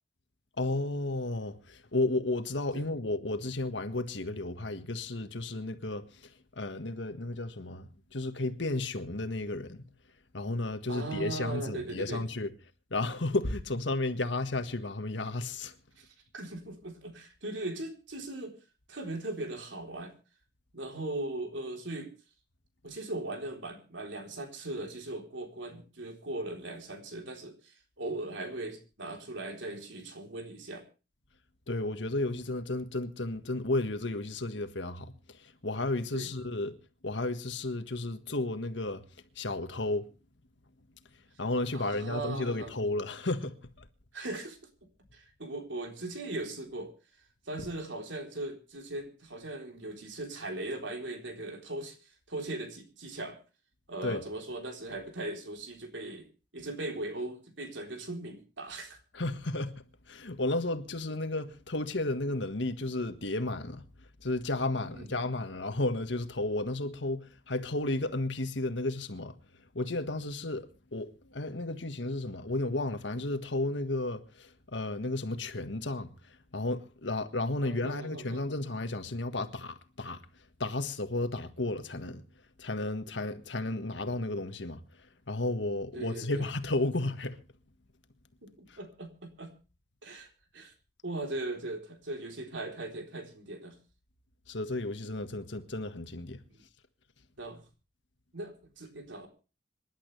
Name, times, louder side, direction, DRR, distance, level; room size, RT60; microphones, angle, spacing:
voice 1, 0.6-9.8 10.3-12.5 12.9-15.7 31.7-36.7 37.0-39.0 39.3-40.1 41.4-43.8 54.0-54.2 59.1-63.9 64.2-69.3 69.7-80.2 80.6-82.2 82.6-87.4 88.7-88.8 94.5-96.4, left 2 dB, 80° left, 1.6 m, -33 dB
voice 2, 10.9-12.2 16.0-16.1 16.3-18.6 18.9-20.1 20.7-22.1 22.8-30.8 36.1-36.3 41.7-42.7 44.1-44.6 45.1-46.9 47.5-52.0 52.3-53.4 53.9-56.3 56.5-59.0 64.8-65.1 77.6-78.4 85.9-86.4 88.4-89.5 90.0-90.7 91.0-93.8 96.5-96.6 97.4-97.6 98.3-99.3, right 2 dB, 90° right, 3.7 m, -39 dB
26.5 x 11.5 x 3.3 m
head